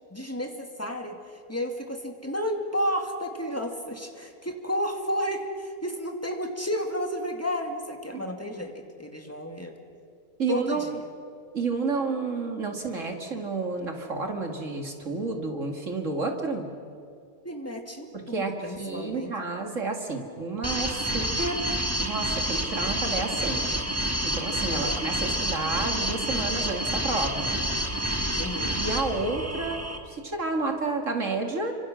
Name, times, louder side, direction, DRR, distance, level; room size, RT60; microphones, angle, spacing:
voice 1, 0.1-9.7 10.5-11.1 17.4-19.3 24.7-25.0 28.4-28.8, equal, 10° left, 3 dB, 2.3 m, -32 dB
voice 2, 10.4-10.9 11.5-16.7 18.1-21.6 22.0-23.6 24.2-27.6 28.8-29.8 30.1-31.7, right 3 dB, 50° right, 4 dB, 2.4 m, -30 dB
sound 1, 20.6-30.0, equal, 10° right, 1.7 m, -28 dB
30.0 x 25.5 x 6.3 m, 2.3 s
omnidirectional pair, 1.7 m